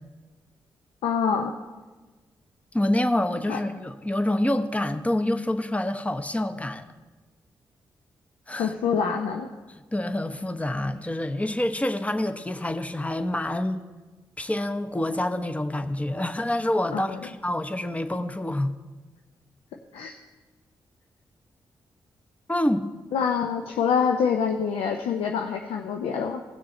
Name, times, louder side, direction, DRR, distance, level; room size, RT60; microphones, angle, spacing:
voice 1, 1.0-1.5 3.5-3.6 8.5-9.5 16.9-17.2 19.9-20.1 23.1-26.4, left 6 dB, 80° left, 4 dB, 0.6 m, -26 dB
voice 2, 2.7-6.8 8.5-8.7 9.9-13.8 14.4-18.7 22.5-22.9, left 1 dB, 15° left, 9 dB, 0.9 m, -27 dB
16.5 x 6.2 x 4.1 m, 1.3 s
supercardioid pair, 40°, 9 cm